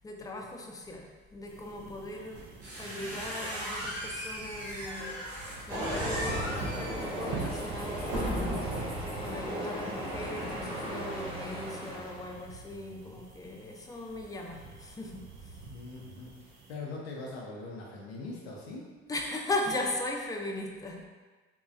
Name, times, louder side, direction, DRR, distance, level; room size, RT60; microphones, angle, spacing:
voice 1, 0.0-2.5 2.8-15.6 19.1-21.1, left 2 dB, 10° left, 1 dB, 0.5 m, -38 dB
sound 1, 1.5-16.7, right 4 dB, 60° right, 0.6 m, -46 dB
sound 2, 2.3-8.9, equal, 85° right, 1.1 m, -37 dB
Train, 5.7-12.4, equal, 20° right, 0.9 m, -36 dB
voice 2, 12.7-13.2 15.7-18.9, left 3 dB, 85° left, -4 dB, 0.6 m, -42 dB
3.5 x 3.0 x 2.5 m, 1.3 s
hypercardioid pair, 50°, 30 cm